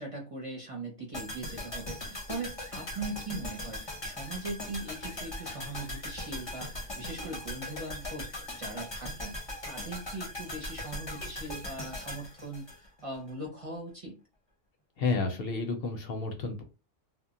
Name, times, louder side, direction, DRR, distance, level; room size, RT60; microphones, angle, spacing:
voice 1, 0.0-14.1, right 2 dB, 35° right, 0 dB, 0.6 m, -40 dB
sound 1, 1.1-13.3 13.6-13.7, left 1 dB, 30° left, 0.6 m, -40 dB
voice 2, 15.0-16.6, left 3 dB, 65° left, 4 dB, 0.8 m, -31 dB
2.1 x 2.0 x 3.7 m, 0.31 s
omnidirectional pair, 1.1 m